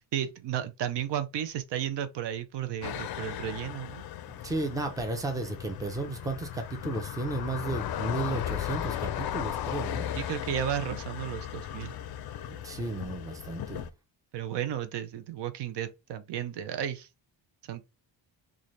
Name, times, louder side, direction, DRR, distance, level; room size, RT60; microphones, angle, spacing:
voice 1, 0.1-4.1 10.1-11.9 14.3-17.1 17.7-17.8, right 10 dB, 65° right, 0.6 m, -33 dB
sound 1, 2.8-13.9, left 11 dB, 55° left, 0.5 m, -36 dB
voice 2, 4.3-10.1 12.5-13.9, right 2 dB, 10° right, 0.6 m, -34 dB
4.0 x 2.4 x 3.1 m
cardioid pair, 140°, 45 cm